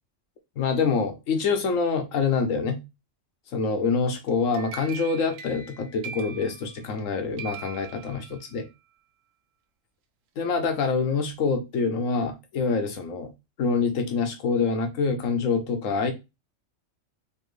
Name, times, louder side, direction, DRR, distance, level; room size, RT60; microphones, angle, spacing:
voice 1, 0.6-2.8 3.5-8.7 10.4-13.3 13.6-16.1, left 5 dB, 85° left, 1.2 m, -26 dB
sound 1, 4.3-7.1 7.4-8.7, right 7 dB, 85° right, 1.0 m, -42 dB
4.5 x 2.7 x 3.2 m
omnidirectional pair, 1.3 m